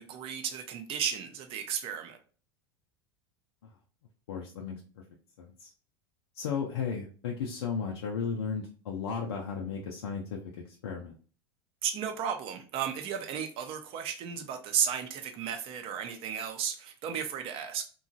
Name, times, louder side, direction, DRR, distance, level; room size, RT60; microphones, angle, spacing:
voice 1, 0.0-2.2 11.8-17.9, right 8 dB, 45° right, 6 dB, 0.6 m, -34 dB
voice 2, 4.3-5.0 5.4-5.7 6.3-11.1, left 6 dB, 75° left, -1 dB, 0.5 m, -35 dB
2.8 x 2.3 x 2.6 m, 0.39 s
hypercardioid pair, 85°, 13 cm